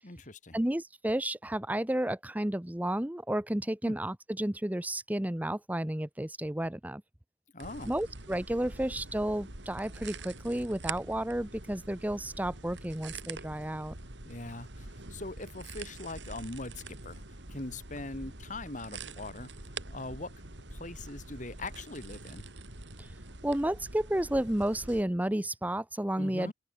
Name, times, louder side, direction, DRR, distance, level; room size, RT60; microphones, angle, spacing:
voice 1, 0.0-0.6 3.8-3.9 7.5-7.9 14.2-17.2 17.5-19.5 19.9-20.3 20.7-22.4 26.2-26.5, left 2 dB, 45° left, 2.4 m, -41 dB
voice 2, 0.5-7.0 7.9-13.9 23.0-23.1 23.4-26.5, right 1 dB, 10° right, 0.8 m, -32 dB
sound 1, 7.6-25.0, right 3 dB, 90° right, 3.8 m, -45 dB
open air
head